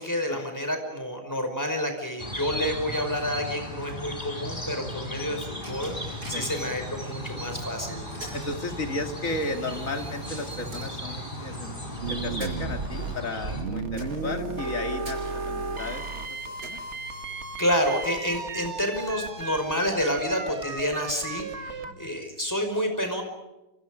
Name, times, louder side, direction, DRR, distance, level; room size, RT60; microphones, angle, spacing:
voice 1, 0.0-8.0 17.6-23.2, equal, 10° left, 5 dB, 5.2 m, -29 dB
sound 1, 2.2-13.6, equal, 30° left, 4.7 m, -36 dB
Coin (dropping), 5.6-22.5, right 1 dB, 65° right, 6.6 m, -47 dB
voice 2, 8.3-11.7 12.1-16.4 16.6-16.8 21.8-21.9, left 2 dB, 45° left, 5 dB, 2.7 m, -34 dB
sound 2, 12.0-21.9, right 3 dB, 40° right, 1.9 m, -34 dB
29.0 x 27.0 x 5.1 m, 1.0 s
omnidirectional pair, 1.9 m